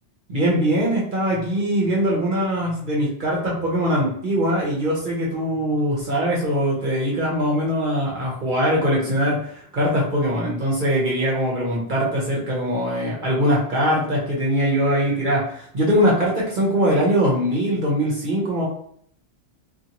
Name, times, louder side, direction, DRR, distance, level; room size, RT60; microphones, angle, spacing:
voice 1, 0.3-18.7, equal, 50° right, -4 dB, 0.8 m, -22 dB
2.7 x 2.5 x 2.8 m, 0.64 s
omnidirectional pair, 1.2 m